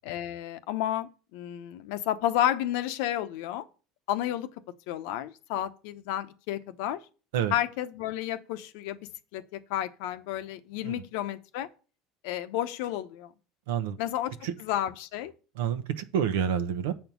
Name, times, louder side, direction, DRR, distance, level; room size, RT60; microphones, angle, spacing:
voice 1, 0.0-3.6 4.1-4.5 4.9-7.0 7.5-11.7 12.2-13.3 14.0-15.3, left 12 dB, 80° left, 0.8 m, -31 dB
voice 2, 13.7-14.0 14.4-14.5 15.5-16.9, right 8 dB, 90° right, 0.9 m, -28 dB
7.5 x 4.5 x 6.8 m
supercardioid pair, 115°, 0 cm